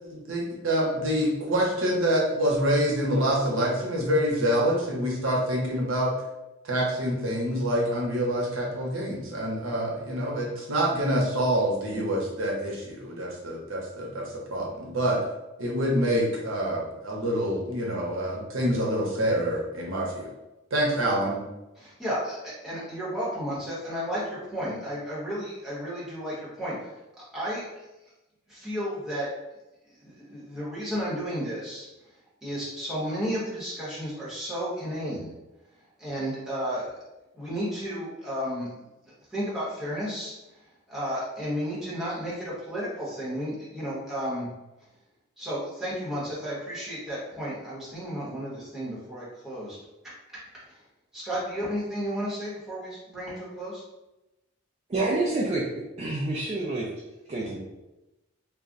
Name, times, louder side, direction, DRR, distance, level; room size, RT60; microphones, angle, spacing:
voice 1, 0.0-6.1 6.6-15.2 15.6-20.3 20.7-21.4, equal, 75° right, -2 dB, 0.7 m, -26 dB
voice 2, 21.8-26.7 27.2-27.6 28.5-29.3 30.0-31.9 32.4-35.3 36.0-36.9 37.3-38.7 39.0-40.4 40.9-44.5 45.4-49.8 50.7-50.8 51.1-53.8, equal, ahead, -9 dB, 1.0 m, -33 dB
voice 3, 54.9-56.9 57.3-57.6, right 2 dB, 30° right, -4 dB, 0.3 m, -28 dB
2.3 x 2.1 x 3.7 m, 1.0 s
head